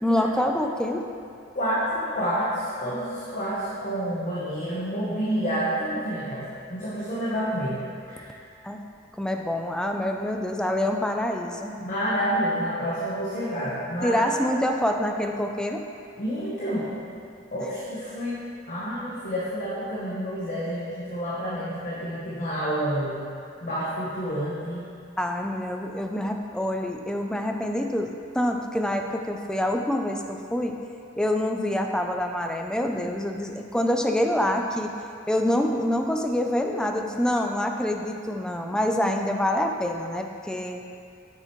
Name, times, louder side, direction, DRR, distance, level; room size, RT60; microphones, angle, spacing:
voice 1, 0.0-1.1 8.6-8.8 9.2-11.7 14.0-15.9 25.2-30.8 31.2-34.9 35.3-40.8, left 1 dB, 5° left, 3 dB, 0.4 m, -26 dB
voice 2, 1.5-7.8 8.1-8.3 11.8-14.2 16.2-16.9 17.5-18.4 18.7-23.2 23.6-24.8, equal, 45° left, -8 dB, 1.1 m, -29 dB
8.2 x 6.7 x 3.1 m, 2.4 s
head